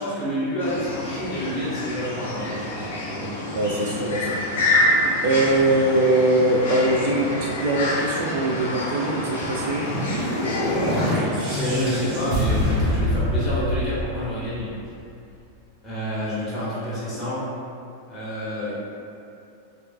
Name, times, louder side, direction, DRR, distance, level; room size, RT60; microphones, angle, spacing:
voice 1, 0.0-3.3 10.8-14.7 15.8-17.4 18.1-18.7, equal, 15° left, -10 dB, 1.3 m, -28 dB
sound 1, 0.6-11.1, left 1 dB, 60° left, 0.6 m, -27 dB
voice 2, 3.5-4.4 5.2-9.9, right 2 dB, 55° right, -1 dB, 0.3 m, -22 dB
sound 2, 9.4-14.8, equal, 35° right, 1.4 m, -25 dB
5.0 x 2.0 x 2.3 m, 2.6 s
figure-of-eight pair, 90°, 0 cm